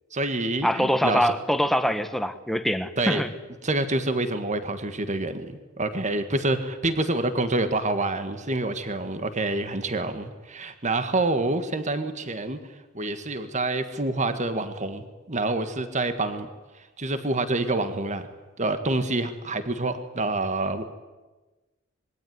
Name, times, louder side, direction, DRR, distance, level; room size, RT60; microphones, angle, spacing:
voice 1, 0.1-1.3 3.0-3.2 3.6-12.6 12.9-16.5 17.0-18.3 18.6-20.8, right 2 dB, 35° right, 1.8 m, -27 dB
voice 2, 0.6-3.3, equal, ahead, 1.4 m, -24 dB
26.5 x 22.0 x 9.6 m
head